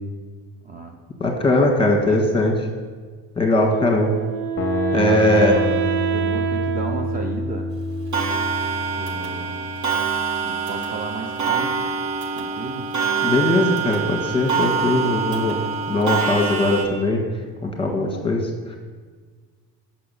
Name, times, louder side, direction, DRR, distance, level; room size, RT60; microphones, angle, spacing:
voice 1, 0.6-1.0 1.8-2.5 5.0-5.6 6.1-7.7 8.9-9.7 10.4-12.0 12.3-12.9 17.9-18.3, right 4 dB, 25° right, 3 dB, 0.5 m, -34 dB
voice 2, 1.2-2.5 3.4-4.1 4.9-5.5 13.2-15.6 15.9-17.2 17.6-18.4, left 2 dB, 15° left, 2 dB, 1.4 m, -20 dB
Wind instrument woodwind instrument, 3.7-8.7, right 10 dB, 85° right, 0.8 m, -26 dB
sound 1, 4.6-10.6, left 6 dB, 35° left, 0.6 m, -29 dB
Clock, 8.1-16.9, right 6 dB, 50° right, 1.3 m, -25 dB
6.0 x 5.8 x 6.9 m, 1.5 s
cardioid pair, 120°, 37 cm